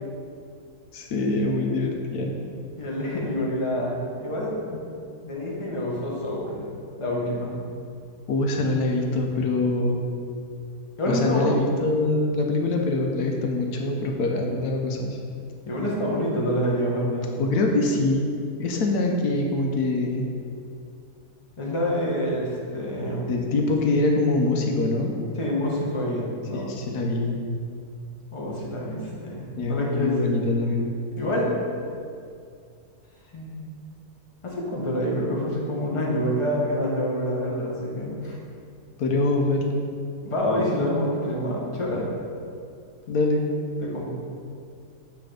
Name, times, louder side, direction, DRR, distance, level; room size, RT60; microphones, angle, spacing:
voice 1, 0.9-2.4 4.7-4.8 8.3-10.0 11.1-15.2 17.4-18.3 18.6-20.3 23.3-25.1 26.5-27.4 29.6-30.9 39.0-39.8 43.1-43.5, left 2 dB, 80° left, 1 dB, 1.2 m, -24 dB
voice 2, 2.8-4.5 5.2-6.6 7.0-7.5 11.0-11.5 15.7-17.4 21.6-23.3 25.4-26.8 28.3-30.2 31.2-31.5 33.3-33.7 34.4-38.4 40.2-42.1 43.8-44.1, equal, 25° left, -4 dB, 1.1 m, -27 dB
8.3 x 3.4 x 4.9 m, 2.4 s
omnidirectional pair, 1.6 m